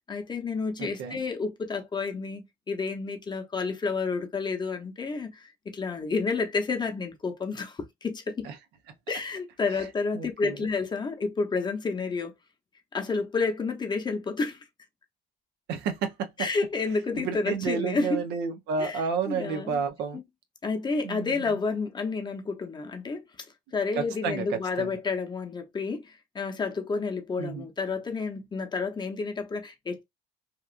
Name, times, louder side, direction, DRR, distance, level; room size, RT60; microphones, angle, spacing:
voice 1, 0.1-8.5 9.1-12.3 12.9-14.6 16.4-18.2 18.8-19.8 20.1-20.2 20.6-23.2 23.7-30.0, left 4 dB, 25° left, 0.7 m, -30 dB
voice 2, 0.8-1.2 8.4-8.5 9.7-9.9 10.1-10.6 15.7-16.3 17.1-20.2 21.0-21.6 23.9-24.9 27.4-27.7, right 6 dB, 85° right, 0.7 m, -31 dB
2.9 x 2.4 x 2.4 m
cardioid pair, 110°, 17 cm